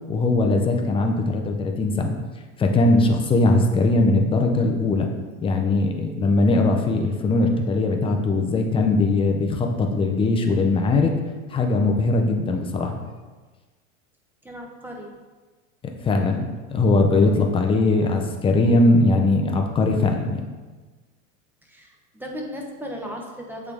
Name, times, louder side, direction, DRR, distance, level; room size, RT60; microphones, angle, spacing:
voice 1, 0.1-2.1 2.6-5.1 5.4-11.1 11.5-12.9 16.0-20.4, left 2 dB, 15° left, 3 dB, 0.4 m, -20 dB
voice 2, 14.4-15.1 17.2-17.4 21.6-23.7, equal, 5° right, 0 dB, 0.8 m, -36 dB
8.1 x 3.5 x 3.4 m, 1.3 s
supercardioid pair, 125°, 40 cm